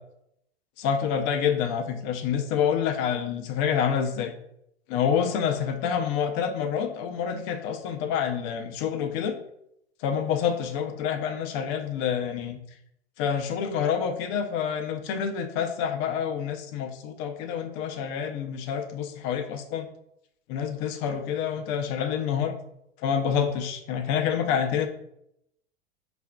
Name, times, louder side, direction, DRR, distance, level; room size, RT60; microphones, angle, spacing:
voice 1, 0.8-4.3 4.9-9.4 10.0-12.6 13.2-19.9 20.5-22.5 23.0-24.9, left 7 dB, 40° left, 6 dB, 0.5 m, -27 dB
5.4 x 2.5 x 2.2 m, 0.77 s
hypercardioid pair, 95°, 33 cm